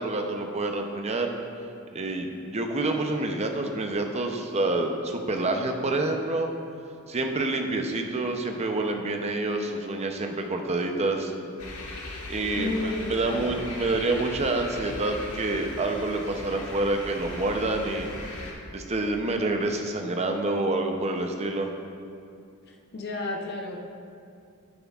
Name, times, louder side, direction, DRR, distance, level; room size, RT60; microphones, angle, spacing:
voice 1, 0.0-1.3 1.9-6.5 7.1-11.3 12.3-18.1 18.7-21.7, right 2 dB, 30° right, 4 dB, 0.6 m, -27 dB
sound 1, 11.6-18.5, left 2 dB, 85° left, 1.3 m, -39 dB
voice 2, 12.5-13.6 22.7-23.8, left 2 dB, 50° left, 0 dB, 0.8 m, -32 dB
9.9 x 8.9 x 2.4 m, 2.5 s
head